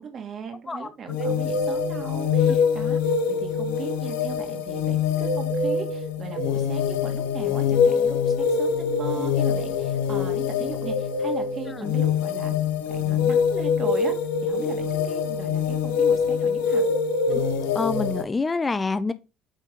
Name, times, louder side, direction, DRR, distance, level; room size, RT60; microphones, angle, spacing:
voice 1, 0.0-3.1 3.4-12.6 12.9-14.1 14.4-16.8, right 6 dB, 45° right, 2.1 m, -38 dB
sound 1, 1.1-18.2, left 7 dB, 85° left, 0.8 m, -24 dB
sound 2, 1.2-2.6 5.2-6.6 10.8-12.2 16.8-18.2, right 1 dB, 85° right, 3.1 m, -29 dB
voice 2, 17.7-19.1, left 3 dB, 20° left, 0.5 m, -27 dB
8.0 x 4.1 x 3.7 m
supercardioid pair, 85°, 0 cm